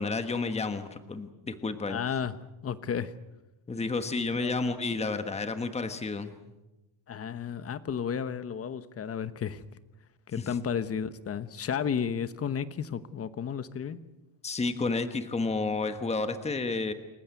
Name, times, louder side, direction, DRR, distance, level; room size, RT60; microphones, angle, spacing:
voice 1, 0.0-2.0 3.7-6.4 10.4-10.5 14.4-16.9, left 3 dB, 15° left, 9 dB, 1.3 m, -31 dB
voice 2, 1.9-2.3 2.6-3.1 4.4-4.5 7.1-9.6 10.3-14.0, left 7 dB, 30° left, 13 dB, 1.1 m, -32 dB
28.5 x 15.0 x 9.4 m, 1.0 s
cardioid pair, 165°, 47 cm